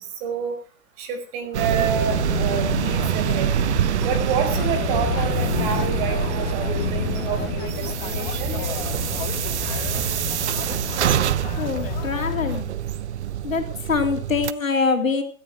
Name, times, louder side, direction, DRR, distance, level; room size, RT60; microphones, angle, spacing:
voice 1, 0.2-0.5 1.0-3.5 4.0-8.6, right 6 dB, 40° right, 7 dB, 4.9 m, -28 dB
sound 1, 1.5-14.5, right 10 dB, 55° right, 0.8 m, -26 dB
sound 2, 1.6-12.6, left 9 dB, 45° left, 2.1 m, -30 dB
voice 2, 11.6-12.7 13.4-15.2, left 5 dB, 75° left, 5 dB, 3.3 m, -24 dB
17.0 x 13.5 x 4.8 m, 0.38 s
figure-of-eight pair, 105°, 40 cm